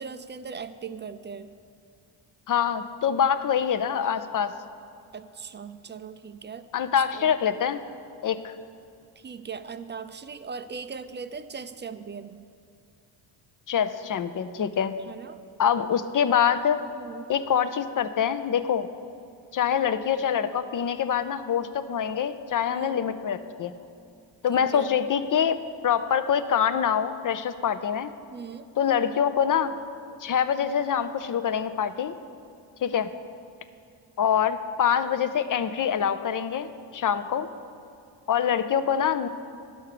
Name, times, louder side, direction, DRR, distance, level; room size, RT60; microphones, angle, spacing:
voice 1, 0.0-1.5 5.1-7.3 9.2-12.4 15.1-15.4 16.9-17.3 22.7-23.0 24.5-24.9 28.3-28.7, right 5 dB, 25° right, 11 dB, 0.4 m, -39 dB
voice 2, 2.5-4.5 6.7-7.8 8.2-8.6 13.7-14.9 15.6-16.8 17.3-18.9 19.5-23.7 24.4-25.6 25.8-28.1 28.8-29.7 30.2-32.1 32.8-33.1 34.2-36.7 36.9-37.5 38.3-39.3, left 8 dB, 40° left, 11 dB, 0.6 m, -25 dB
11.0 x 6.4 x 6.7 m, 2.6 s
cardioid pair, 80°, 48 cm